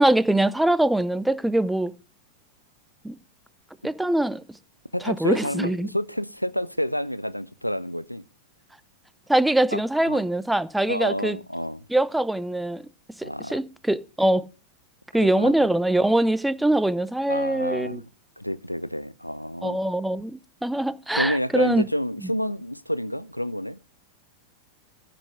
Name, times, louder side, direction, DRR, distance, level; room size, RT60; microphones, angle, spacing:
voice 1, 0.0-1.9 3.0-3.2 3.8-4.4 5.0-5.9 9.3-11.4 11.9-12.8 13.2-14.4 15.1-18.0 19.6-21.9, right 1 dB, 5° right, 0.7 m, -23 dB
voice 2, 4.9-8.2 9.7-10.2 10.9-11.9 13.2-13.6 15.2-15.7 17.3-18.0 18.4-19.8 21.1-23.8, equal, 90° left, 0.6 m, -29 dB
15.0 x 6.0 x 4.7 m
figure-of-eight pair, 90°, 0 cm